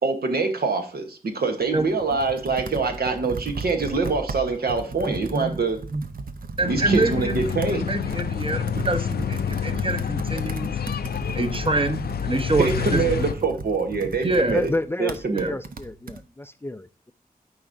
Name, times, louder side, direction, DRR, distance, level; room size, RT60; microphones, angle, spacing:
voice 1, 0.0-5.8 6.7-7.9 12.6-14.7 15.0-15.5, right 4 dB, 85° right, 5 dB, 1.0 m, -25 dB
Computer keyboard, 1.6-16.2, right 3 dB, 65° right, 0.7 m, -37 dB
voice 2, 5.1-5.5 5.9-6.0 6.6-10.7 11.3-13.0 14.2-14.5 15.3-15.5, right 2 dB, 35° right, 7 dB, 0.9 m, -26 dB
sound 1, 6.6-13.3, left 8 dB, 85° left, 0.4 m, -28 dB
voice 3, 14.5-17.1, left 2 dB, 15° left, 12 dB, 0.3 m, -30 dB
12.0 x 4.8 x 2.6 m, 0.36 s
wide cardioid pair, 65°, 16 cm